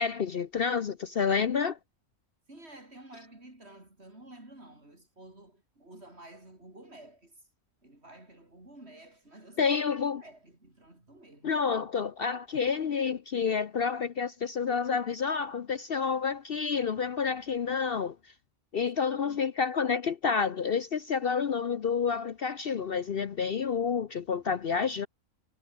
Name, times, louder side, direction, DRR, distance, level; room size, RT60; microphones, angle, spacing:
voice 1, 0.0-1.8 9.6-10.2 11.4-18.2 18.7-25.1, left 6 dB, 50° left, 0.9 m, -29 dB
voice 2, 2.5-7.4 7.8-9.7 10.2-11.6 19.1-19.4, right 1 dB, 50° right, 6.6 m, -51 dB
omnidirectional pair, 1.4 m